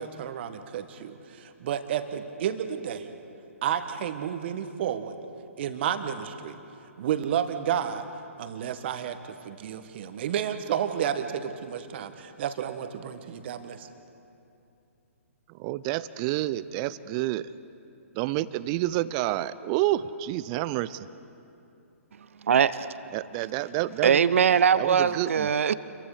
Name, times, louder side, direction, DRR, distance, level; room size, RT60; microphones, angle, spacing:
voice 1, 0.0-3.1 3.6-5.1 5.6-6.6 7.0-8.1 8.4-13.9, right 9 dB, 45° right, 8 dB, 1.6 m, -31 dB
voice 2, 15.6-17.4 18.2-21.1 23.1-24.2 24.8-25.5, right 15 dB, 30° right, 16 dB, 0.6 m, -29 dB
voice 3, 22.4-23.2 24.0-25.7, right 7 dB, 60° right, 15 dB, 0.9 m, -22 dB
29.0 x 23.0 x 5.1 m, 2.7 s
figure-of-eight pair, 130°, 8 cm